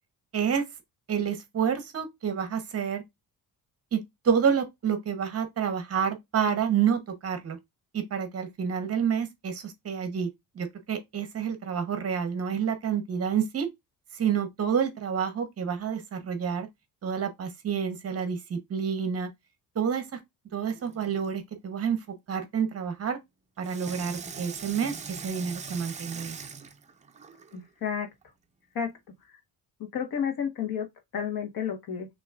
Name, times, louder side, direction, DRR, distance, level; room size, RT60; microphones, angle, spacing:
voice 1, 0.3-0.7 1.1-3.0 3.9-7.6 7.9-10.3 10.5-13.7 14.1-16.7 17.0-19.3 19.7-20.2 20.5-23.2 23.6-26.4, right 7 dB, 40° right, 1.0 m, -29 dB
Water tap faucet / Sink (filling or washing), 20.7-21.3 23.6-27.6 28.2-28.3, right 5 dB, 20° right, 0.5 m, -41 dB
voice 2, 27.5-28.1 28.7-28.9 29.8-30.9 31.1-32.1, left 7 dB, 70° left, 1.5 m, -31 dB
6.0 x 3.0 x 2.4 m
cardioid pair, 160°, 37 cm